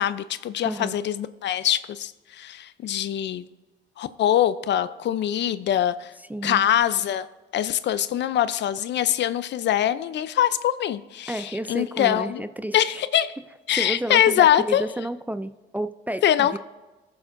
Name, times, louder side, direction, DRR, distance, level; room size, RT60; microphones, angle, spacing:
voice 1, 0.0-3.4 4.0-6.1 6.4-7.3 7.5-12.4 12.7-13.3 13.7-14.8 16.2-16.6, left 11 dB, 65° left, 14 dB, 0.5 m, -23 dB
voice 2, 0.6-1.0 6.3-6.7 11.3-13.0 13.7-16.6, right 1 dB, 10° right, 11 dB, 0.3 m, -31 dB
18.0 x 7.2 x 2.6 m, 1.2 s
cardioid pair, 90°, 20 cm